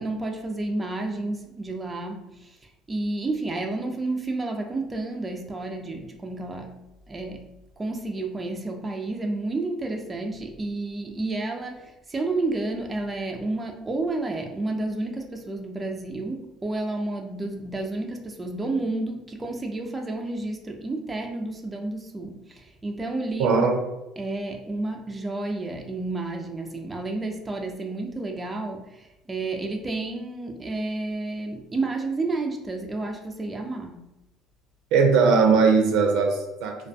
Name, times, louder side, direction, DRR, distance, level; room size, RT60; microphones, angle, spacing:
voice 1, 0.0-6.8 7.1-7.5 7.8-23.7 24.2-34.0, right 2 dB, 20° right, 3 dB, 0.3 m, -31 dB
voice 2, 23.4-23.8 34.9-36.8, right 5 dB, 75° right, 3 dB, 0.5 m, -19 dB
2.3 x 2.2 x 2.5 m, 0.93 s
supercardioid pair, 90°, 0 cm